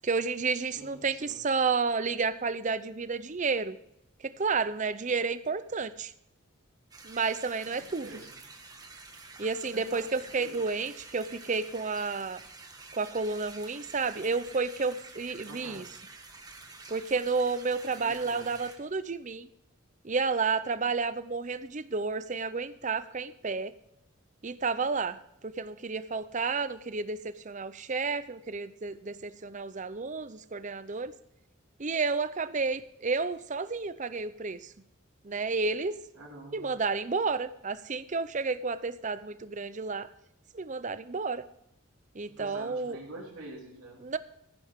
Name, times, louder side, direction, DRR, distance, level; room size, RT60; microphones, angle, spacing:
voice 1, 0.0-3.8 4.2-6.1 7.0-8.1 9.4-12.4 12.9-15.8 16.9-19.5 20.0-23.7 24.4-25.2 25.4-31.1 31.8-34.7 35.2-36.0 36.5-40.1 40.5-41.4 42.1-43.0 44.0-44.2, right 4 dB, 35° right, 14 dB, 0.6 m, -31 dB
voice 2, 0.6-1.4 7.6-8.4 9.7-10.1 10.4-10.6 15.4-15.9 17.9-18.6 36.1-36.7 42.3-44.0, right 1 dB, 90° right, -5 dB, 3.3 m, -46 dB
sound 1, 6.9-18.8, right 3 dB, 20° right, 1.6 m, -49 dB
15.0 x 10.5 x 3.7 m, 0.78 s
head